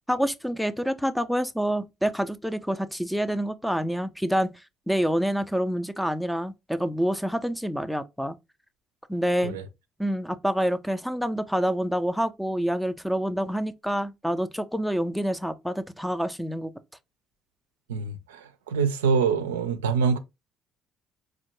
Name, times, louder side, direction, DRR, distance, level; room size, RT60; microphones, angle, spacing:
voice 1, 0.1-4.5 4.9-8.4 9.1-9.6 10.0-16.7, equal, ahead, 0.4 m, -27 dB
voice 2, 17.9-20.2, right 5 dB, 85° right, 0.4 m, -25 dB
4.3 x 2.2 x 2.9 m
hypercardioid pair, 50°, 0 cm